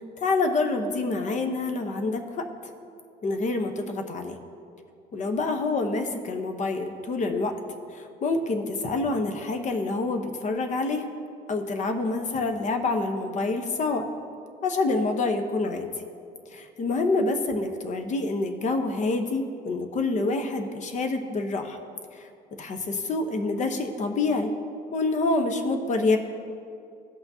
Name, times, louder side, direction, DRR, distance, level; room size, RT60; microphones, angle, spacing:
voice 1, 0.0-2.5 3.2-4.4 5.1-7.5 7.9-11.1 11.5-14.0 14.6-15.9 16.5-21.8 22.1-22.3 22.6-24.5 24.9-26.2, left 3 dB, 45° left, 6 dB, 0.9 m, -27 dB
17.0 x 5.8 x 2.8 m, 2.5 s
cardioid pair, 110°, 17 cm